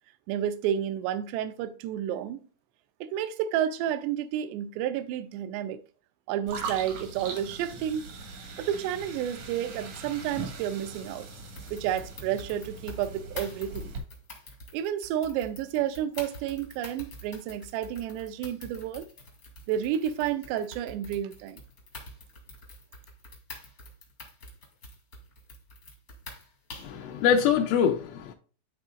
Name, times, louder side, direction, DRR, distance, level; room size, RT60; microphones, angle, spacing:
voice 1, 0.3-2.4 3.0-5.8 6.3-8.1 8.6-11.3 11.7-13.9 14.7-19.1 19.7-21.6, right 10 dB, 85° right, 2.6 m, -31 dB
sound 1, 6.5-14.0, right 4 dB, 60° right, 1.8 m, -41 dB
sound 2, 11.6-27.0, left 1 dB, 50° left, 1.0 m, -46 dB
voice 2, 26.8-28.3, left 8 dB, 85° left, 3.2 m, -24 dB
11.5 x 4.0 x 2.4 m
omnidirectional pair, 5.3 m